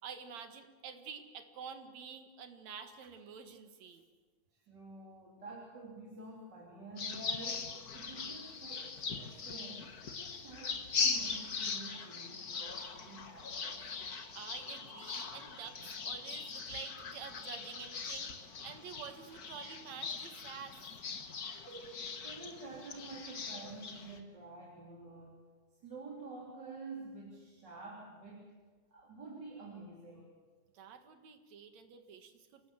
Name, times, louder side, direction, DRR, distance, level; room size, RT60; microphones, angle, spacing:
voice 1, 0.0-4.0 14.4-20.8 30.7-32.6, right 6 dB, 65° right, 7 dB, 2.9 m, -48 dB
voice 2, 4.5-9.9 10.2-13.9 21.5-25.4 25.8-28.5 28.9-30.4, right 3 dB, 35° right, -2 dB, 3.7 m, -49 dB
sound 1, 7.0-24.2, left 5 dB, 45° left, 1.3 m, -40 dB
28.0 x 19.0 x 7.3 m, 1.4 s
omnidirectional pair, 3.4 m